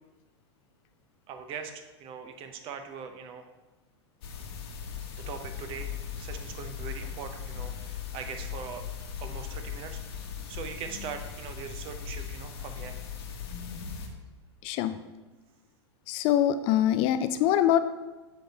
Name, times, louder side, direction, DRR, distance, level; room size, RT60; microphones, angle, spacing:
voice 1, 1.3-3.5 5.3-8.8 9.2-13.0, right 6 dB, 40° right, 7 dB, 0.8 m, -41 dB
sound 1, 4.2-14.1, left 7 dB, 60° left, 1.1 m, -39 dB
voice 2, 14.6-15.0 16.1-17.8, left 11 dB, 40° left, 11 dB, 0.4 m, -24 dB
7.6 x 3.5 x 5.2 m, 1.1 s
figure-of-eight pair, 95°, 15 cm